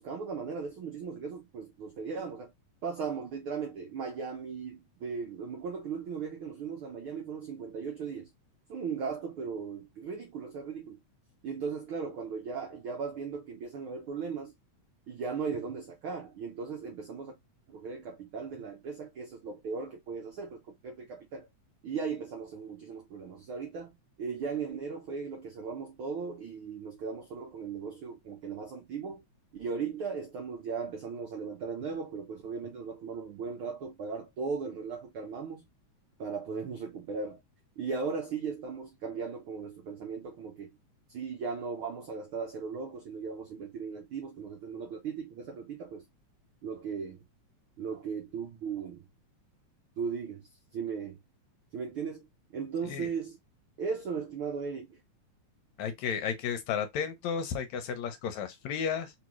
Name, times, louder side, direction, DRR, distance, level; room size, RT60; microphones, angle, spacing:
voice 1, 0.0-2.5 2.8-8.3 8.7-11.0 11.4-14.5 15.1-17.3 17.7-21.5 21.8-23.9 24.2-29.2 29.5-35.6 36.2-37.4 37.8-40.7 41.1-46.0 46.6-47.2 47.8-49.1 50.0-51.2 51.7-52.3 52.5-53.4 53.8-55.0, right 5 dB, 70° right, 1.2 m, -37 dB
voice 2, 55.8-59.1, left 7 dB, 70° left, 2.0 m, -33 dB
4.6 x 3.6 x 3.0 m
omnidirectional pair, 3.5 m